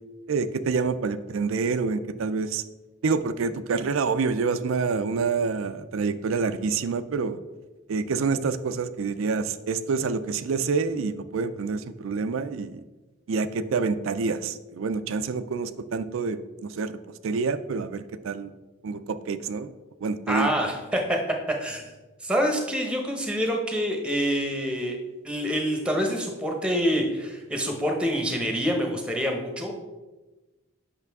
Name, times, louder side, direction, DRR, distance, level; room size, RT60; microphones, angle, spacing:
voice 1, 0.3-2.6 3.0-7.4 7.9-12.8 13.3-17.0 17.2-18.5 18.8-19.7 20.0-20.5, right 4 dB, 75° right, 12 dB, 0.4 m, -27 dB
voice 2, 20.3-21.9 22.2-25.0 25.2-29.8, equal, 5° right, 2 dB, 0.9 m, -26 dB
8.1 x 6.1 x 3.5 m, 1.2 s
head